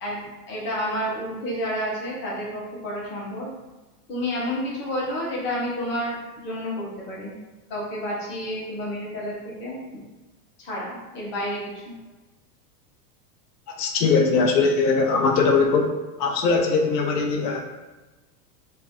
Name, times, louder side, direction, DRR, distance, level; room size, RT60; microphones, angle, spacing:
voice 1, 0.0-3.5 4.1-7.4 7.7-9.8 10.6-11.9, equal, 25° left, -5 dB, 0.7 m, -30 dB
voice 2, 13.7-15.9 16.2-17.6, left 4 dB, 85° left, 3 dB, 0.6 m, -20 dB
2.5 x 2.1 x 3.5 m, 1.2 s
supercardioid pair, 155°, 48 cm